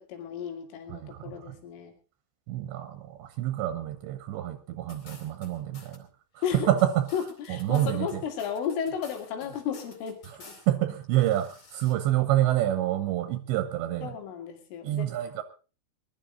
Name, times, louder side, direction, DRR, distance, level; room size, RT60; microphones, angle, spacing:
voice 1, 0.0-1.9 6.4-6.7 7.1-10.6 14.0-15.1, left 7 dB, 85° left, 4 dB, 5.0 m, -34 dB
voice 2, 0.9-1.6 2.5-6.1 6.5-7.1 7.5-8.2 10.7-14.1 14.8-15.4, right 13 dB, 80° right, 9 dB, 3.0 m, -27 dB
sound 1, 4.9-6.0 6.4-10.7 11.0-11.9, left 3 dB, 35° left, 2.4 m, -51 dB
21.5 x 12.0 x 3.9 m, 0.35 s
omnidirectional pair, 5.6 m